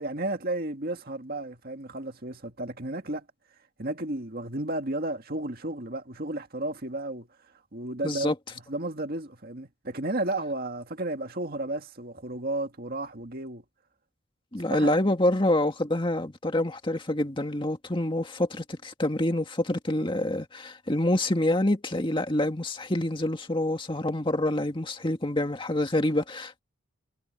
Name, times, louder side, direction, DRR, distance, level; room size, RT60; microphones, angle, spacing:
voice 1, 0.0-3.2 3.8-7.3 7.7-8.3 8.7-13.6 14.6-15.0, right 2 dB, 50° right, 2.0 m, -33 dB
voice 2, 8.0-8.3 14.5-26.6, left 1 dB, 25° left, 2.0 m, -27 dB
head